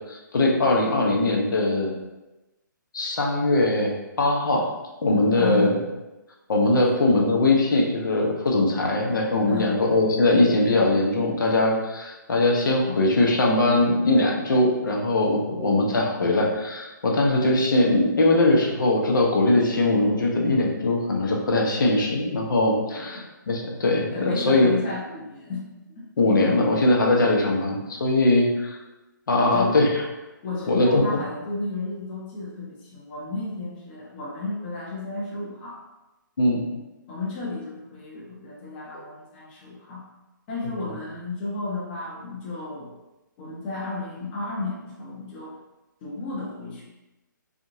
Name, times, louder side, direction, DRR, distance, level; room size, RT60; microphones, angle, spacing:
voice 1, 0.1-1.9 2.9-4.7 5.0-5.8 6.5-24.7 26.2-28.8 29.3-30.0 30.7-31.0 36.4-36.6, left 2 dB, 70° left, -1 dB, 0.8 m, -21 dB
voice 2, 5.3-5.7 6.8-6.9 9.5-9.8 12.9-13.0 22.8-23.3 24.1-25.6 25.9-26.1 29.4-29.8 30.4-35.8 37.1-40.0 40.5-42.9 43.4-45.5 46.0-46.8, left 3 dB, 30° left, -4 dB, 0.9 m, -33 dB
3.6 x 2.4 x 2.7 m, 1.0 s
hypercardioid pair, 155°, 11 cm